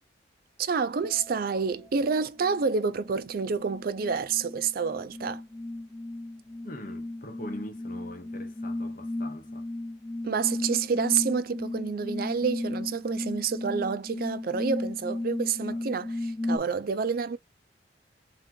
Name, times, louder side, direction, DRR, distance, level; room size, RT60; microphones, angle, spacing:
voice 1, 0.6-5.4 10.2-17.4, right 5 dB, 55° right, 0.4 m, -28 dB
sound 1, 1.0-1.3 1.8-16.6, left 1 dB, 20° left, 0.4 m, -35 dB
voice 2, 6.6-9.7 15.7-15.8, left 1 dB, 50° left, 1.0 m, -42 dB
3.7 x 2.9 x 3.8 m
head